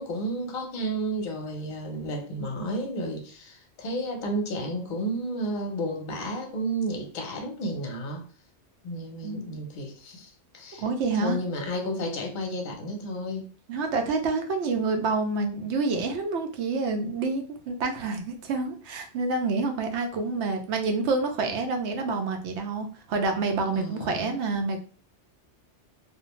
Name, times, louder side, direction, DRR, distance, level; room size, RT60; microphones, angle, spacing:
voice 1, 0.0-8.2 8.8-10.8 11.1-13.5 23.7-24.3, right 1 dB, 50° left, 0.7 m, -32 dB
voice 2, 10.8-11.4 13.7-24.8, right 3 dB, 75° right, 0.9 m, -28 dB
2.5 x 2.1 x 2.9 m
omnidirectional pair, 1.2 m